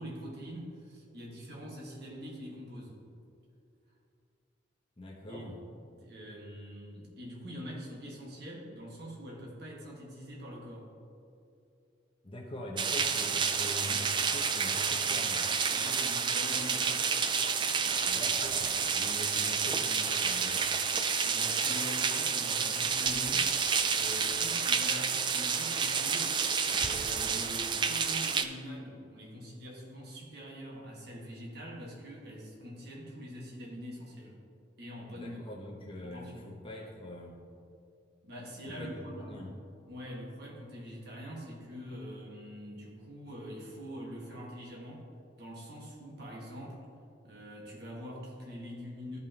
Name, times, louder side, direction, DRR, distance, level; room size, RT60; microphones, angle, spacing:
voice 1, 0.0-3.0 5.3-10.9 15.7-17.1 20.9-23.5 23.8-34.4 34.8-35.6 36.0-36.5 38.2-39.5 39.9-45.1 45.4-46.8 47.2-49.2, equal, 55° right, -3 dB, 1.6 m, -44 dB
voice 2, 5.0-5.6 12.2-15.4 18.0-20.6 35.1-37.4 38.7-39.5, left 1 dB, 25° left, -1 dB, 0.9 m, -43 dB
sound 1, 12.8-28.4, right 6 dB, 25° right, 0.3 m, -29 dB
13.5 x 5.5 x 2.9 m, 2.5 s
head